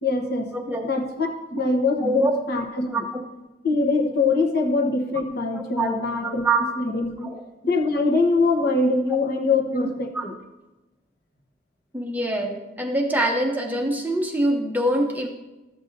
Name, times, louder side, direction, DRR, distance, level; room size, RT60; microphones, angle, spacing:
voice 1, 0.0-0.5 0.8-2.9 3.6-6.4 6.8-7.3 7.6-10.3, left 3 dB, 55° left, 2 dB, 1.1 m, -23 dB
voice 2, 0.5-0.8 2.0-2.3 2.9-3.2 5.5-6.6 7.2-7.3 9.4-9.5 9.8-9.9 10.1-10.2 11.9-15.3, right 1 dB, 10° right, 2 dB, 0.7 m, -25 dB
13.0 x 8.0 x 2.7 m, 1.0 s
head